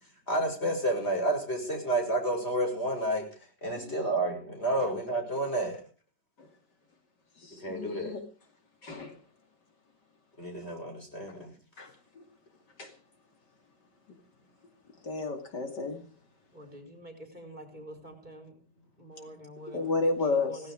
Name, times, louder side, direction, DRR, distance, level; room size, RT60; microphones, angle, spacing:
voice 1, 0.3-3.2 3.6-5.8 7.6-8.1 10.4-11.5, right 1 dB, 35° left, 3 dB, 6.4 m, -30 dB
voice 2, 7.4-8.2 8.8-9.2 11.8-11.9 12.1-12.2 12.8-12.9 15.0-16.0 19.7-20.5, left 3 dB, 70° left, 4 dB, 3.2 m, -32 dB
voice 3, 16.5-18.5 19.0-20.7, equal, 25° right, 4 dB, 4.6 m, -47 dB
17.5 x 16.0 x 5.0 m, 0.38 s
omnidirectional pair, 1.9 m